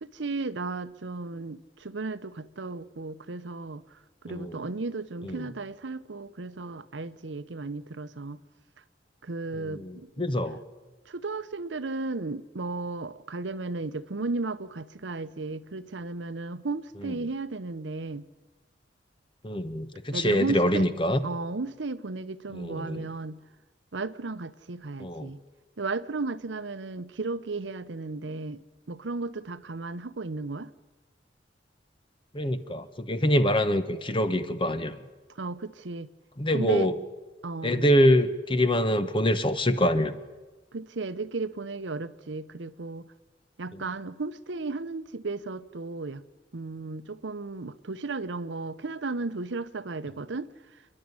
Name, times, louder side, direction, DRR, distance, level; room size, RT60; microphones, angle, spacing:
voice 1, 0.0-8.4 9.2-10.1 11.1-18.2 20.1-20.9 21.2-23.4 23.9-25.4 25.8-30.7 35.3-36.1 36.5-36.9 37.4-37.9 40.7-43.1 43.6-46.2 46.5-50.5, right 3 dB, 80° right, 0.8 m, -34 dB
voice 2, 4.3-4.6 5.2-5.4 9.8-10.6 19.4-21.2 22.5-23.0 25.0-25.3 32.3-35.0 36.4-36.9 37.6-40.2, equal, 30° left, 1.1 m, -25 dB
28.5 x 11.0 x 9.6 m
head